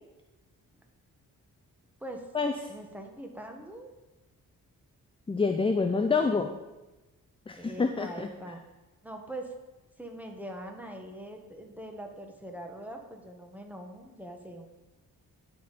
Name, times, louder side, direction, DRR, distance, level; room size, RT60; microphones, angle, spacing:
voice 1, 2.7-3.9 7.6-8.6 9.0-9.5 10.0-14.7, right 1 dB, 5° right, 2 dB, 1.4 m, -42 dB
voice 2, 5.3-6.6 7.5-8.3, left 4 dB, 15° left, 6 dB, 0.5 m, -27 dB
10.5 x 4.3 x 5.2 m, 1.1 s
cardioid pair, 75°, 35 cm